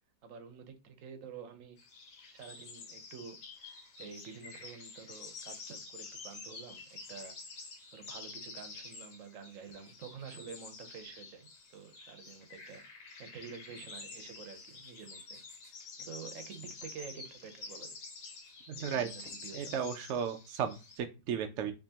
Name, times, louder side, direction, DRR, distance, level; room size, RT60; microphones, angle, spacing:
voice 1, 0.2-1.8 2.3-3.4 4.0-7.4 7.9-12.8 13.2-15.4 16.0-17.9 18.7-19.8, right 6 dB, 60° right, 0.9 m, -49 dB
sound 1, 1.8-21.0, left 4 dB, 75° left, 1.6 m, -49 dB
voice 2, 18.7-19.1 19.5-21.7, right 7 dB, 85° right, 0.6 m, -35 dB
4.5 x 2.8 x 2.8 m
omnidirectional pair, 1.8 m